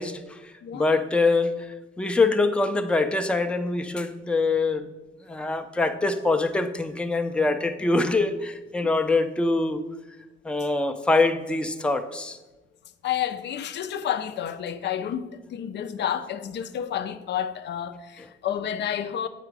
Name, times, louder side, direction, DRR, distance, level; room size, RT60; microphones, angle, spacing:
voice 1, 0.0-4.9 5.2-9.8 10.4-12.4, left 3 dB, 5° left, 0.5 m, -24 dB
voice 2, 0.6-1.0 13.0-19.3, left 9 dB, 60° left, 0.5 m, -30 dB
7.9 x 4.9 x 4.7 m
cardioid pair, 90°, 20 cm